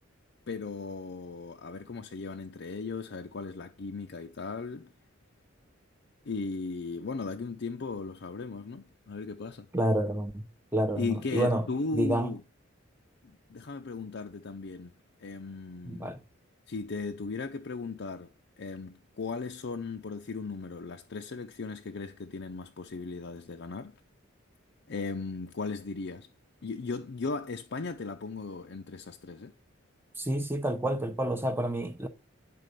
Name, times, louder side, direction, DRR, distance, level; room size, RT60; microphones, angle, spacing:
voice 1, 0.5-4.9 6.3-9.7 10.9-12.4 13.5-14.9 15.2-16.1 16.7-18.3 18.6-23.9 24.9-26.3 26.6-29.5, left 4 dB, 60° left, 0.5 m, -37 dB
voice 2, 9.7-10.4 10.7-11.7 11.9-12.3 15.8-16.2 30.2-32.1, right 1 dB, 10° right, 0.7 m, -29 dB
9.9 x 4.1 x 6.7 m
head